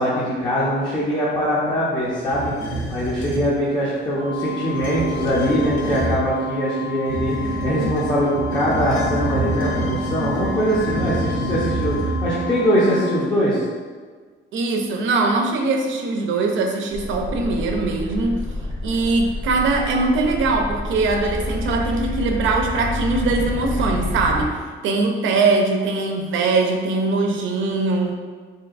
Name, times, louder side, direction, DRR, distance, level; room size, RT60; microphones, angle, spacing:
voice 1, 0.0-2.5 2.9-13.6, equal, 20° left, -8 dB, 0.6 m, -22 dB
sound 1, 2.2-3.5 4.6-6.3 7.0-12.6, right 1 dB, 75° left, 0.8 m, -27 dB
sound 2, 4.1-13.2, equal, 30° right, 0.6 m, -30 dB
voice 2, 14.5-18.5 18.8-28.1, right 3 dB, 75° right, 3 dB, 0.5 m, -21 dB
sound 3, 16.9-24.5, left 1 dB, 45° left, 0.9 m, -28 dB
3.1 x 2.8 x 2.4 m, 1.5 s
cardioid pair, 90°, 20 cm